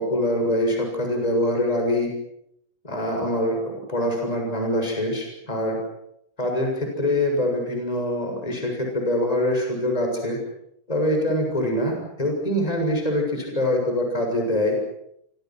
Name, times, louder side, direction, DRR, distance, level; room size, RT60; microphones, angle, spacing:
voice 1, 0.0-2.1 2.8-5.8 6.4-10.4 10.9-14.7, left 1 dB, 10° left, 2 dB, 7.0 m, -24 dB
28.5 x 26.0 x 6.3 m, 0.75 s
omnidirectional pair, 3.6 m